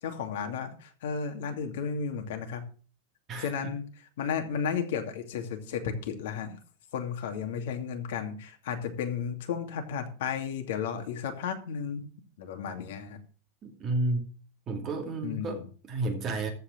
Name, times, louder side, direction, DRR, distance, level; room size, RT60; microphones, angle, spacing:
voice 1, 0.0-2.6 3.4-3.8 4.2-6.6 6.9-12.1 12.4-13.2 15.2-15.6, left 7 dB, 70° left, 5 dB, 2.4 m, -33 dB
voice 2, 13.6-14.2 14.7-16.5, right 2 dB, 20° right, 2 dB, 2.4 m, -31 dB
14.5 x 4.9 x 7.5 m, 0.40 s
supercardioid pair, 170°, 0 cm